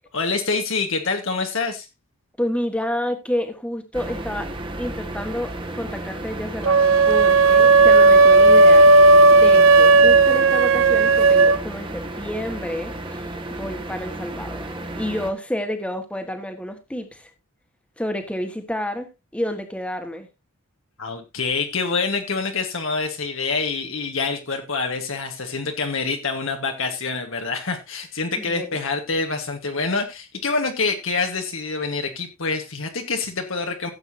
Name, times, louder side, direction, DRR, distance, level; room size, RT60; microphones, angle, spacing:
voice 1, 0.1-1.9 21.0-33.9, left 4 dB, 60° left, 1.5 m, -26 dB
voice 2, 2.4-4.5 4.8-8.9 9.3-17.3 18.0-20.3 28.4-28.7, left 1 dB, 5° left, 1.6 m, -29 dB
sound 1, 3.9-15.3, right 1 dB, 20° right, 1.4 m, -33 dB
sound 2, 6.6-11.6, right 3 dB, 60° right, 0.7 m, -13 dB
16.0 x 7.9 x 2.8 m
head